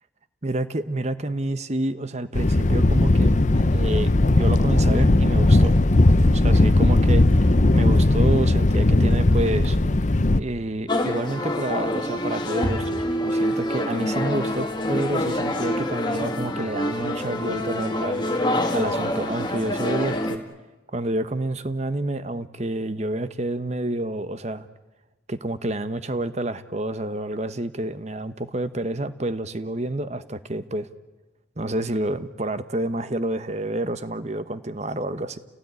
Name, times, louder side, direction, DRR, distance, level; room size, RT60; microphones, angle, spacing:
voice 1, 0.4-5.7 6.3-9.8 10.4-20.4 20.9-24.7 25.3-30.9 31.6-35.4, right 1 dB, 35° right, 12 dB, 1.1 m, -29 dB
Thunder, 2.3-10.4, left 2 dB, 40° left, 0.8 m, -18 dB
sound 1, 10.9-20.4, left 1 dB, 25° left, 1.9 m, -26 dB
29.5 x 17.5 x 9.7 m, 1.2 s
head